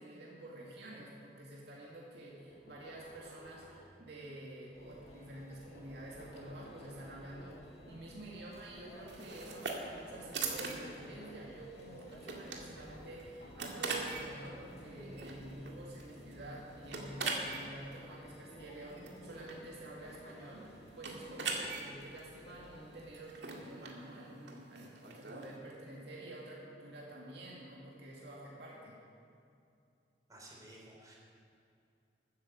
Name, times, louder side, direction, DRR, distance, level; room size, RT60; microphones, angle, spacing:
voice 1, 0.0-29.0, right 1 dB, 65° right, -4 dB, 2.3 m, -49 dB
sound 1, 2.5-4.3 5.7-7.8 9.3-11.5 12.9-14.8 15.6-15.7 17.1-17.2 17.5-17.6, left 1 dB, 55° left, 3.4 m, -56 dB
Conversation / Chatter / Crowd, 4.7-23.2, equal, 35° left, 1.8 m, -55 dB
sound 2, 9.1-25.6, right 4 dB, 85° right, 2.0 m, -43 dB
voice 2, 30.3-31.1, right 1 dB, 20° right, -3 dB, 3.7 m, -54 dB
13.5 x 9.4 x 7.7 m, 2.5 s
head